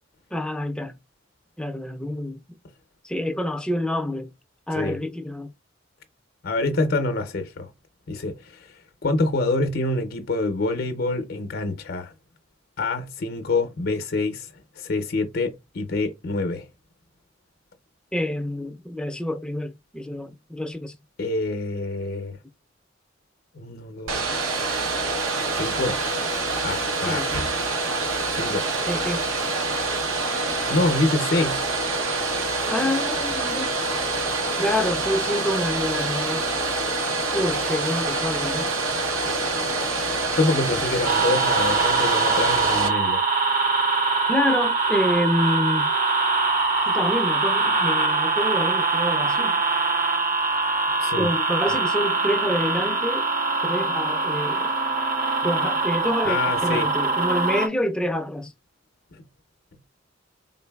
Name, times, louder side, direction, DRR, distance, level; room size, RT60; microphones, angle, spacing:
voice 1, 0.3-1.0 1.6-2.4 3.0-4.3 4.7-5.5 18.1-21.0 27.0-27.5 28.8-29.3 32.7-33.7 34.6-36.5 37.3-38.7 44.3-45.9 46.8-49.6 51.2-53.3 53.6-54.7 55.4-58.5, left 1 dB, 5° left, 0.4 m, -27 dB
voice 2, 6.4-7.7 8.1-12.1 12.8-16.7 21.2-22.4 23.6-24.3 25.5-26.0 26.6-27.2 28.3-28.7 30.7-31.6 40.3-43.2 51.0-51.3 56.2-56.9 59.1-59.2, left 2 dB, 50° left, 0.6 m, -26 dB
Domestic sounds home sounds, 24.1-42.9, right 3 dB, 85° right, 0.8 m, -26 dB
sound 1, 41.0-57.7, right 4 dB, 45° right, 0.7 m, -23 dB
3.9 x 3.7 x 2.2 m
head